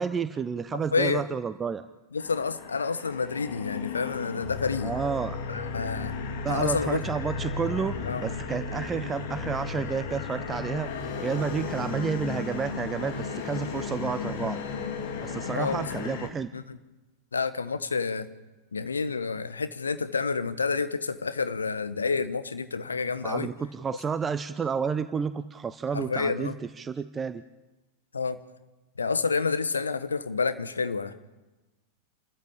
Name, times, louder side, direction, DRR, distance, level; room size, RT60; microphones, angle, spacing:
voice 1, 0.0-1.9 4.8-5.4 6.4-10.9 11.2-14.6 15.2-16.5 23.2-27.4, right 6 dB, 20° right, 12 dB, 0.8 m, -30 dB
voice 2, 0.7-1.2 2.1-4.9 5.5-6.1 6.5-7.0 8.0-8.2 15.4-15.8 16.5-16.8 17.3-18.3 18.7-23.5 25.9-26.5 28.1-28.4 29.0-31.1, left 4 dB, 75° left, 11 dB, 1.3 m, -29 dB
sound 1, 2.2-16.3, left 5 dB, 55° left, 2.7 m, -34 dB
28.5 x 14.0 x 8.7 m, 1.1 s
figure-of-eight pair, 90°, 0 cm